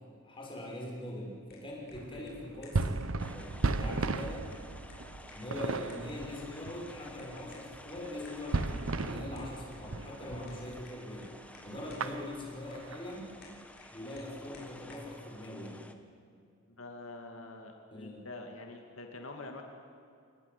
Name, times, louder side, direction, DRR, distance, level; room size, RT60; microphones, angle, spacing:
voice 1, 0.2-4.4 5.3-11.3 11.6-13.3 13.9-15.8 17.9-18.2, left 1 dB, 25° left, -2 dB, 6.6 m, -42 dB
sound 1, 1.3-15.2, left 3 dB, 50° left, 6.3 m, -60 dB
sound 2, 1.9-10.9 11.2-11.4 11.7-13.6, right 3 dB, 85° right, 1.0 m, -36 dB
sound 3, 3.2-15.9, left 1 dB, 5° left, 1.2 m, -53 dB
voice 2, 16.8-19.6, left 2 dB, 85° left, 3 dB, 2.4 m, -46 dB
28.0 x 19.5 x 8.3 m, 2.4 s
head